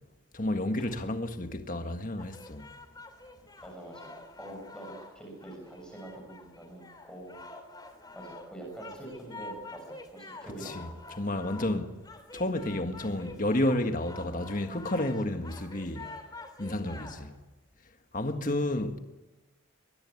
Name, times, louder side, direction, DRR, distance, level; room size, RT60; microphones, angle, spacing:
voice 1, 0.3-2.7 10.6-10.9 11.2-11.9 12.3-16.1 16.6-17.3 18.1-19.0, left 1 dB, 40° left, 1.7 m, -31 dB
sound 1, 2.2-17.4, left 2 dB, 20° left, 3.2 m, -48 dB
voice 2, 3.6-4.1 4.4-7.4 8.1-11.0 16.8-17.1 18.3-18.4, right 1 dB, 5° left, 7.1 m, -45 dB
22.0 x 22.0 x 8.5 m
head